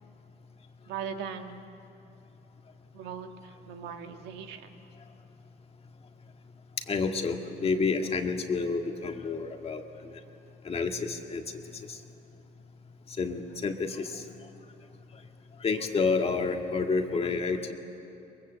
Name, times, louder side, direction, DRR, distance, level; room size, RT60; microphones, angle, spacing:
voice 1, 0.9-1.6 2.9-4.8, right 7 dB, 90° right, 6 dB, 1.7 m, -39 dB
voice 2, 6.9-9.8 10.6-11.4 11.9-12.0 13.2-14.2 15.6-17.7, left 4 dB, 35° left, 4 dB, 1.9 m, -29 dB
22.5 x 22.0 x 8.1 m, 2.9 s
cardioid pair, 110°, 17 cm